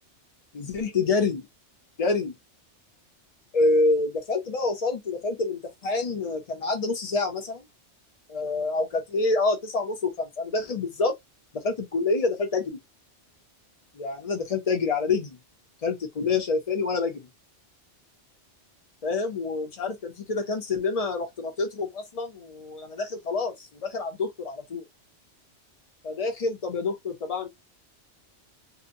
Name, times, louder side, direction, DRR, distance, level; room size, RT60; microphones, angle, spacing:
voice 1, 0.5-1.5 2.0-2.3 3.5-7.7 8.3-11.1 11.5-12.8 13.9-15.4 15.8-17.3 19.0-24.8 26.0-27.5, left 3 dB, 40° left, 0.7 m, -27 dB
2.7 x 2.2 x 2.6 m
omnidirectional pair, 1.2 m